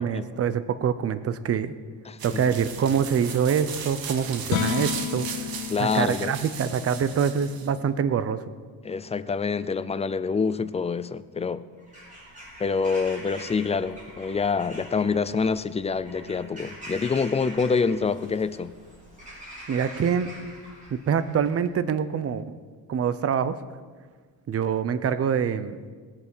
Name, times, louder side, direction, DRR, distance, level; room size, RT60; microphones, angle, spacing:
voice 1, 0.0-1.7 2.2-5.3 5.8-8.4 19.7-20.3 20.9-22.5 22.9-23.6 24.5-25.8, right 7 dB, 35° right, 13 dB, 0.7 m, -25 dB
voice 2, 2.1-2.4 5.7-6.3 8.8-11.6 12.6-18.7, left 5 dB, 15° left, 14 dB, 0.3 m, -26 dB
sound 1, 2.2-7.8, right 7 dB, 60° right, 1.4 m, -37 dB
sound 2, 4.4-10.8, left 10 dB, 70° left, 0.9 m, -35 dB
Bird vocalization bird call bird song / Crow, 11.8-21.7, equal, 20° right, 4.3 m, -44 dB
19.0 x 8.0 x 5.6 m, 1.5 s
cardioid pair, 135°, 40 cm